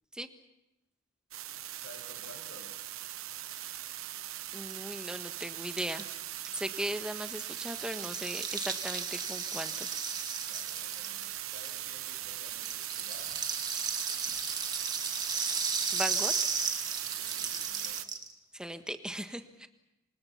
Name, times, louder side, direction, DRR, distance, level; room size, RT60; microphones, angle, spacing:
sound 1, 1.3-18.0, right 13 dB, 80° right, 1.0 m, -40 dB
voice 1, 1.8-2.8 10.5-13.3 17.0-18.1, left 1 dB, 55° left, 4 dB, 6.5 m, -54 dB
Rattle (instrument), 4.4-4.5 4.7-4.8 5.0-12.1 12.4-18.3, right 5 dB, 20° right, 2.1 m, -35 dB
voice 2, 4.5-6.1 6.5-9.9 15.9-16.3 18.5-19.7, right 1 dB, 5° right, 8 dB, 1.4 m, -38 dB
27.5 x 25.5 x 5.8 m, 0.91 s
head